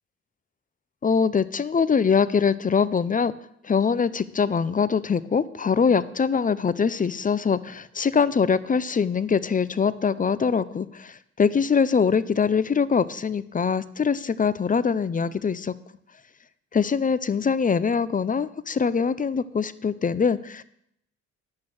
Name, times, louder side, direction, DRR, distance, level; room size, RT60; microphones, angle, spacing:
voice 1, 1.0-3.3 3.6-15.7 16.7-20.6, left 6 dB, 25° left, 16 dB, 0.6 m, -23 dB
10.5 x 8.4 x 6.2 m, 0.72 s
cardioid pair, 90°, 30 cm